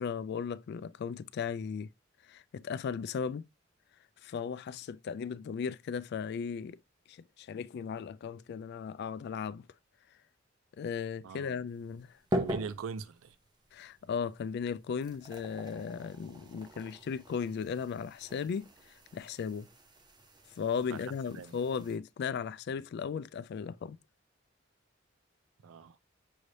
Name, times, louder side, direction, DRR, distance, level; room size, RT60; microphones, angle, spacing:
voice 1, 0.0-1.9 2.3-3.4 4.2-6.8 7.1-9.6 10.8-12.2 13.7-18.7 19.1-19.7 20.6-24.0, left 6 dB, 55° left, 0.3 m, -36 dB
voice 2, 11.2-11.6 12.3-13.4 20.9-21.0 21.3-21.6 25.6-26.0, right 5 dB, 85° right, 0.4 m, -41 dB
sound 1, 11.7-22.0, equal, 20° right, 0.7 m, -42 dB
6.2 x 3.2 x 2.7 m
head